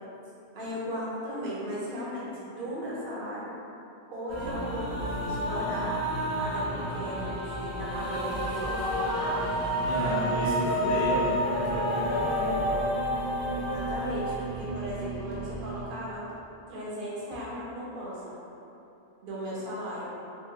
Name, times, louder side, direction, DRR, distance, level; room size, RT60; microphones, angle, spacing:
voice 1, 0.5-3.5 4.1-5.9 6.4-9.6 13.5-16.2 16.7-18.3 19.2-20.1, equal, 55° right, -7 dB, 0.8 m, -36 dB
sound 1, 4.3-15.8, equal, 25° left, 0.6 m, -30 dB
sound 2, 8.3-8.7 9.3-9.5 10.2-10.4 11.1-11.3 12.1-12.3 13.2-13.3 14.2-14.4 15.3-15.7 16.3-16.4 17.3-17.5, right 1 dB, 85° right, 0.9 m, -51 dB
voice 2, 9.8-12.7, left 1 dB, 65° left, -10 dB, 0.8 m, -31 dB
3.7 x 2.0 x 2.6 m, 2.9 s
omnidirectional pair, 1.1 m